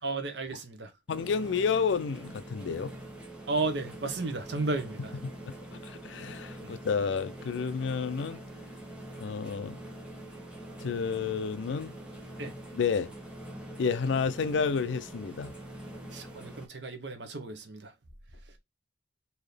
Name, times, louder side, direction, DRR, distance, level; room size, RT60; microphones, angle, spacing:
voice 1, 0.0-0.9 3.5-5.1 6.6-6.7 12.4-12.5 16.1-17.9, right 3 dB, 70° right, 1.0 m, -33 dB
voice 2, 1.1-2.9 5.5-5.6 5.8-8.4 9.2-9.8 10.8-11.9 12.7-13.1 13.8-15.5, left 5 dB, 85° left, 0.4 m, -30 dB
sound 1, 1.1-16.7, right 1 dB, 5° right, 1.0 m, -44 dB
4.2 x 2.8 x 3.3 m
head